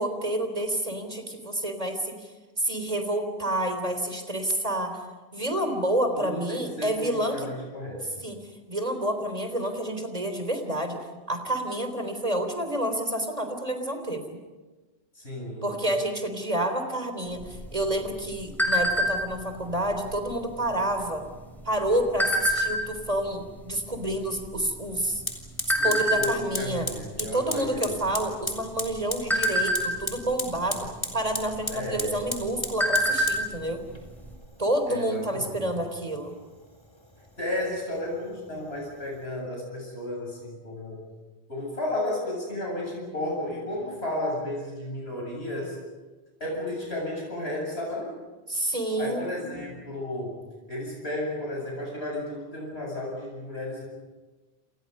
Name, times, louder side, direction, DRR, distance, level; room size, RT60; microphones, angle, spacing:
voice 1, 0.0-2.3 2.6-5.0 5.3-7.5 8.2-8.4 8.7-11.0 11.3-14.4 15.6-21.3 21.6-25.2 25.8-26.9 27.2-30.9 31.1-33.8 34.6-36.3 48.5-49.3, right 1 dB, 35° right, 7 dB, 3.6 m, -29 dB
voice 2, 6.1-8.1 15.1-15.7 25.8-28.0 31.7-32.2 34.9-35.6 37.4-41.0 41.5-45.8 46.4-48.1 49.0-50.4 50.7-53.8, left 1 dB, 85° left, -2 dB, 8.1 m, -33 dB
sound 1, 17.4-19.4 19.9-20.2 20.4-20.8 21.5-23.0 23.6-23.7 23.9-25.2 25.7-26.2 26.7-27.0 27.3-27.5 27.9-28.5 28.9-30.3 31.4-31.5 31.9-32.0 32.4-33.5 33.7-33.8 34.2-34.3, equal, ahead, 6.3 m, -25 dB
Fire, 25.3-39.3, left 1 dB, 25° left, 3.7 m, -38 dB
29.0 x 27.5 x 5.5 m, 1.2 s
omnidirectional pair, 1.1 m